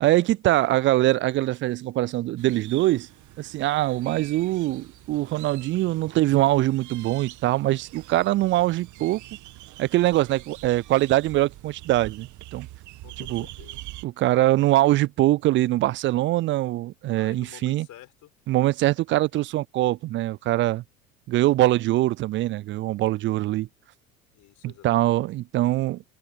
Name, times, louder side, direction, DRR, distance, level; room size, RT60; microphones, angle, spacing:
voice 1, 0.0-3.1 3.4-9.2 9.8-12.7 13.3-13.5 14.0-17.9 18.5-20.8 21.3-23.7 24.8-26.0, right 16 dB, 30° right, 0.4 m, -23 dB
sound 1, 2.4-14.0, right 17 dB, 45° right, 1.9 m, -44 dB
voice 2, 13.0-13.8 17.2-18.3 24.3-25.2, left 13 dB, 45° left, 5.2 m, -49 dB
figure-of-eight pair, 75°, 41 cm